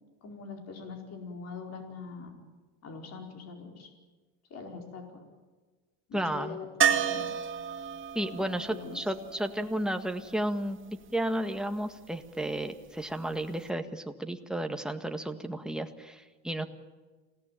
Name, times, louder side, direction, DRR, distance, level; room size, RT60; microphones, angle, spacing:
voice 1, 0.2-2.4 2.8-3.9 4.5-5.2 6.1-7.3 8.3-9.0, left 5 dB, 45° left, 2 dB, 4.8 m, -43 dB
voice 2, 6.1-6.6 8.1-16.7, right 1 dB, ahead, 5 dB, 1.8 m, -33 dB
sound 1, 6.8-10.7 13.3-13.4 13.7-13.8, right 8 dB, 35° right, 2.0 m, -31 dB
27.5 x 18.5 x 9.1 m, 1.3 s
cardioid pair, 125°, 37 cm